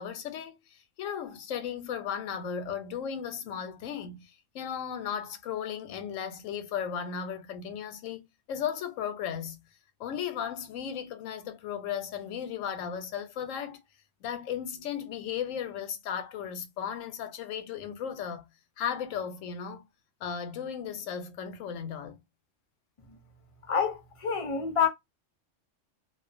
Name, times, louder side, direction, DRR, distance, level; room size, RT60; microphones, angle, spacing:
voice 1, 0.0-9.6 10.0-13.8 14.2-18.5 18.8-19.9 20.2-22.2, left 8 dB, 90° left, 1.0 m, -35 dB
voice 2, 23.7-24.9, left 7 dB, 55° left, 0.3 m, -27 dB
2.5 x 2.1 x 2.5 m
omnidirectional pair, 1.3 m